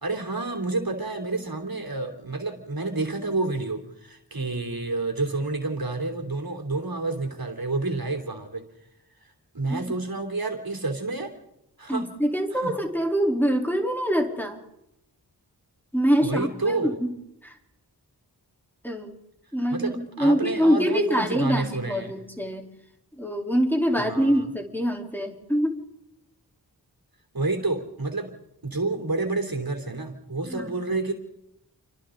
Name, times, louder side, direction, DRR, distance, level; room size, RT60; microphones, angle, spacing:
voice 1, 0.0-8.6 9.5-11.3 11.8-12.1 12.5-12.8 16.2-17.0 19.7-22.2 24.0-24.5 27.3-28.3 28.6-31.1, right 3 dB, 60° right, 3 dB, 3.2 m, -29 dB
voice 2, 11.9-14.6 15.9-17.1 17.4-17.5 18.8-19.1 19.5-22.7 23.2-25.7 30.5-30.7, equal, 5° left, 1 dB, 3.5 m, -24 dB
29.5 x 24.0 x 3.9 m, 0.83 s
wide cardioid pair, 60°, 40 cm